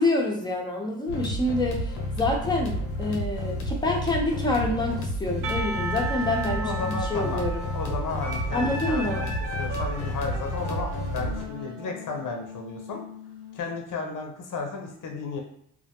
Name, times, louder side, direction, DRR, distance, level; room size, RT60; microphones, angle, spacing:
voice 1, 0.0-7.6 8.5-9.3, left 2 dB, 10° left, -1 dB, 0.7 m, -27 dB
sound 1, 1.1-11.4, left 1 dB, 80° left, 0.7 m, -31 dB
Percussion, 5.4-10.3, right 2 dB, 50° right, 0.5 m, -36 dB
voice 2, 6.6-7.4 7.7-9.3 9.6-13.0 13.5-15.4, left 4 dB, 45° left, 2 dB, 0.8 m, -33 dB
Wind instrument woodwind instrument, 8.2-13.6, equal, 75° right, 0.9 m, -38 dB
2.2 x 2.0 x 2.9 m, 0.67 s
hypercardioid pair, 50°, 45 cm